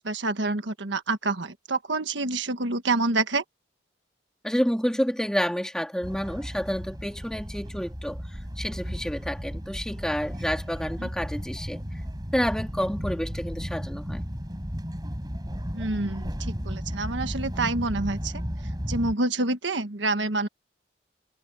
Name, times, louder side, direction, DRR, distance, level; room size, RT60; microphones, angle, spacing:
voice 1, 0.0-3.4 11.0-11.1 15.7-18.4 18.9-20.5, right 2 dB, 80° right, 1.5 m, -27 dB
voice 2, 4.4-11.8 12.3-14.3, equal, 5° left, 2.8 m, -29 dB
sound 1, 6.0-19.1, equal, 20° right, 6.5 m, -34 dB
head